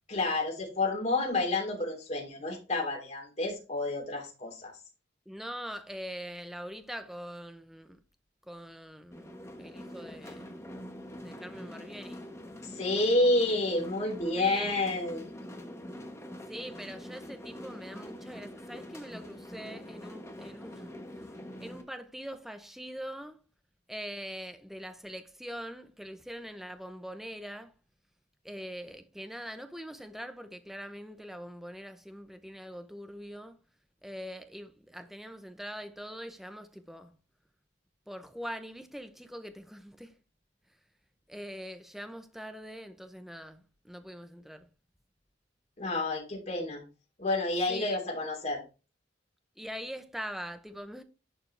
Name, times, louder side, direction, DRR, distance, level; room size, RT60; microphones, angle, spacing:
voice 1, 0.1-4.7 12.6-15.2 45.8-46.8 47.2-48.6, left 2 dB, 40° left, 3.2 m, -29 dB
voice 2, 5.3-8.0 8.5-10.6 11.2-12.3 14.4-14.8 16.5-20.8 21.6-23.4 23.9-27.7 28.4-33.6 34.0-37.1 38.1-40.1 41.3-44.7 47.7-48.0 49.6-51.0, equal, ahead, 0.8 m, -43 dB
sound 1, 9.1-21.8, left 1 dB, 15° left, 1.2 m, -44 dB
11.0 x 4.9 x 3.3 m
head